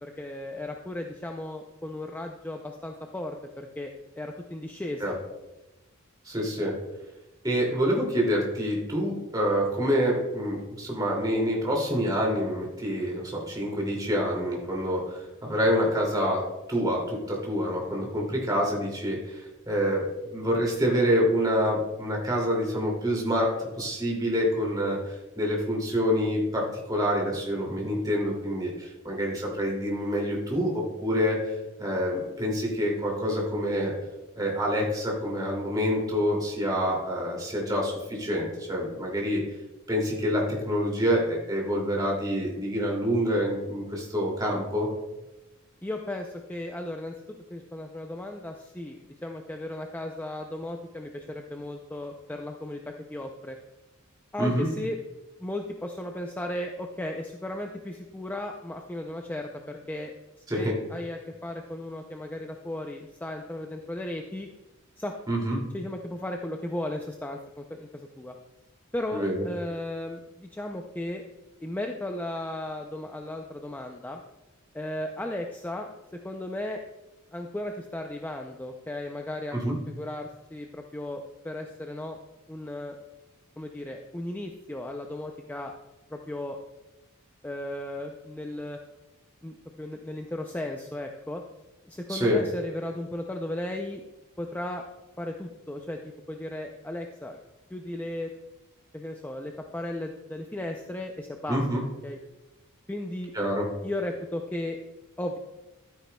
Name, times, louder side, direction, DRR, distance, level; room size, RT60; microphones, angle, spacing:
voice 1, 0.0-5.2 45.8-47.2 47.5-53.6 54.3-55.0 55.4-64.5 65.0-65.1 65.7-68.3 68.9-71.2 71.6-74.2 74.7-75.9 76.2-76.8 77.3-82.2 82.5-83.0 83.6-85.7 86.1-86.6 87.4-88.8 89.4-91.4 91.8-94.0 94.4-94.8 95.2-96.0 96.3-97.4 97.7-98.3 98.9-102.2 102.9-103.3 103.8-104.8 105.2-105.4, left 1 dB, 10° left, 3 dB, 0.4 m, -35 dB
voice 2, 6.2-6.7 7.4-16.4 16.7-31.5 31.8-33.9 34.4-39.4 39.9-44.9 54.4-54.7 60.5-60.8 65.3-65.6 69.1-69.4 79.5-79.7 92.1-92.4 101.5-101.8 103.3-103.7, equal, 20° right, -2 dB, 2.5 m, -27 dB
12.0 x 9.1 x 2.2 m, 1.0 s
head